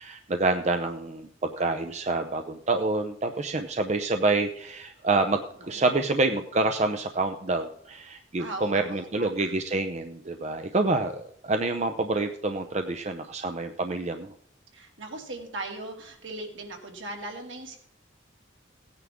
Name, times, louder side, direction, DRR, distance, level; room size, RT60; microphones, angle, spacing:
voice 1, 0.0-5.4 5.7-14.3, right 3 dB, 35° right, 6 dB, 0.6 m, -27 dB
voice 2, 5.7-6.0 8.4-9.4 14.7-17.8, right 2 dB, 75° right, 2 dB, 2.5 m, -39 dB
17.0 x 9.7 x 3.6 m, 0.64 s
head